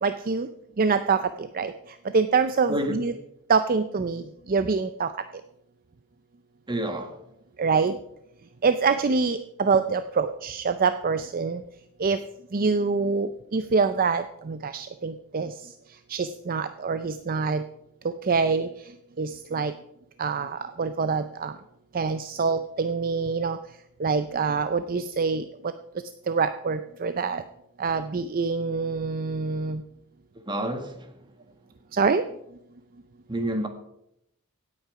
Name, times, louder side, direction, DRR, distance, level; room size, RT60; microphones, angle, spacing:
voice 1, 0.0-0.5 0.8-1.7 2.1-3.1 3.5-4.2 4.5-5.1 7.6-8.0 8.6-11.6 12.0-12.2 12.5-15.5 16.1-17.6 18.3-18.7 19.2-19.7 20.2-21.5 21.9-23.6 24.0-25.4 26.3-27.4 27.8-29.8 31.9-32.2, right 5 dB, 40° right, 0.5 m, -25 dB
voice 2, 2.7-3.1 6.7-7.2 30.5-31.1 33.3-33.7, right 1 dB, 20° right, 1.5 m, -29 dB
16.5 x 8.6 x 4.9 m
head